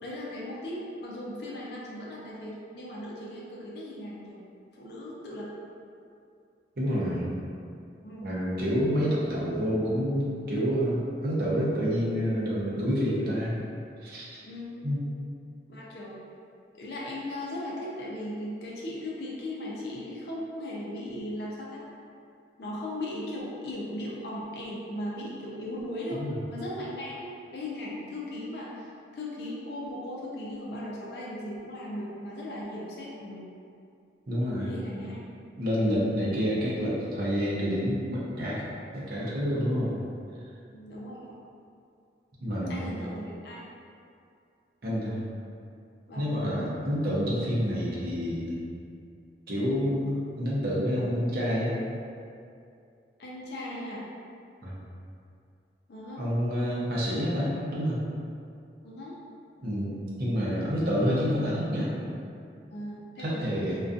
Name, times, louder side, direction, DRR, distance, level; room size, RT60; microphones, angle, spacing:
voice 1, 0.0-4.4 4.7-5.5 8.0-8.3 14.4-14.8 15.7-16.2 16.7-21.8 22.6-33.5 34.6-35.2 40.7-41.4 42.7-43.6 46.1-46.3 53.2-54.1 55.9-56.2 58.8-59.2 62.7-63.4, left 1 dB, 65° left, -5 dB, 0.4 m, -37 dB
voice 2, 6.8-7.3 8.2-13.5 14.0-14.4 14.8-15.0 26.1-26.3 34.3-34.8 35.6-38.6 38.9-40.0 42.4-42.9 44.8-45.2 46.2-48.6 49.5-51.8 54.6-54.8 56.2-58.0 59.6-61.9 63.2-63.8, equal, 55° right, -6 dB, 0.5 m, -28 dB
2.4 x 2.2 x 2.5 m, 2.4 s
head